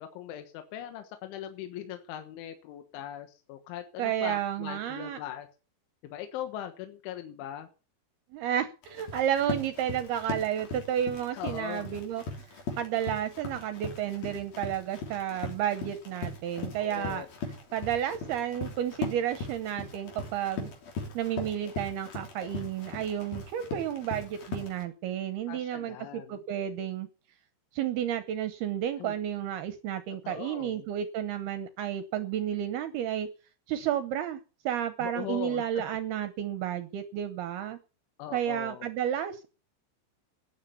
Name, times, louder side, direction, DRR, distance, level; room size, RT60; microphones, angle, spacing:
voice 1, 0.0-5.5 6.0-7.7 11.3-12.0 16.8-17.3 25.5-26.4 29.0-29.2 30.2-30.9 35.0-35.8 38.2-38.9, left 11 dB, 85° left, 8 dB, 3.7 m, -40 dB
voice 2, 4.0-5.2 8.3-12.2 12.8-17.3 17.7-20.7 21.1-27.1 27.7-33.3 33.7-37.8 38.3-39.5, right 10 dB, 75° right, 11 dB, 2.5 m, -31 dB
Run, 8.8-24.8, left 3 dB, 55° left, 4.8 m, -39 dB
15.5 x 9.9 x 6.9 m, 0.35 s
omnidirectional pair, 5.3 m